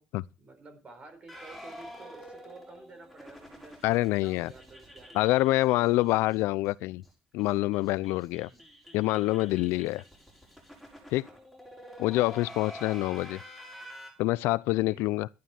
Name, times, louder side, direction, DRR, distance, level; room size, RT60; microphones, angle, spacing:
voice 1, 0.4-5.2 8.4-8.6 11.2-11.4 14.9-15.1, right 3 dB, 30° right, 4.2 m, -51 dB
sound 1, 1.3-6.4 6.6-6.7 7.0-7.1 7.4-14.1, equal, 5° right, 5.5 m, -48 dB
voice 2, 3.8-4.5 5.1-7.0 7.3-8.5 8.9-10.0 11.1-11.3 12.0-13.4 14.2-15.3, left 18 dB, 85° left, 0.5 m, -26 dB
12.0 x 11.0 x 4.4 m
cardioid pair, 145°, 4 cm